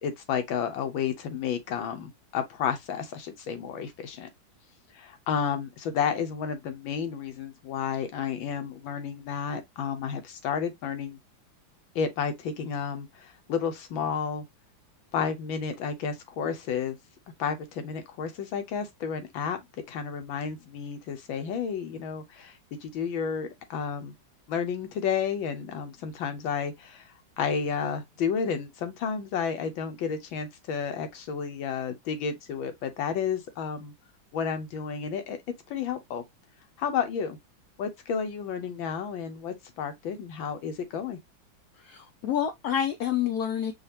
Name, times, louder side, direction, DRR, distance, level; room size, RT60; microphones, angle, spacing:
voice 1, 0.0-4.3 4.9-11.2 11.9-14.4 15.1-17.0 17.4-19.6 19.9-24.1 24.5-27.1 27.4-33.9 34.3-35.4 35.7-36.2 36.8-37.4 37.8-41.2, left 7 dB, 85° left, 1.7 m, -31 dB
voice 2, 41.8-43.7, left 9 dB, 70° left, 0.9 m, -28 dB
5.5 x 2.5 x 2.8 m
omnidirectional pair, 2.1 m